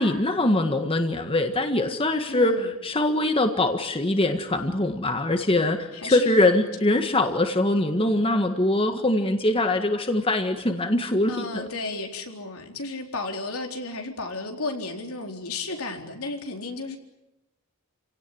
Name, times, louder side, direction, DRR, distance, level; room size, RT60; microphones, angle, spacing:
voice 1, 0.0-11.7, left 1 dB, 25° left, 6 dB, 1.7 m, -23 dB
voice 2, 2.3-2.7 5.9-7.0 11.3-17.0, left 3 dB, 85° left, 3 dB, 4.0 m, -33 dB
29.0 x 18.0 x 10.0 m, 0.95 s
head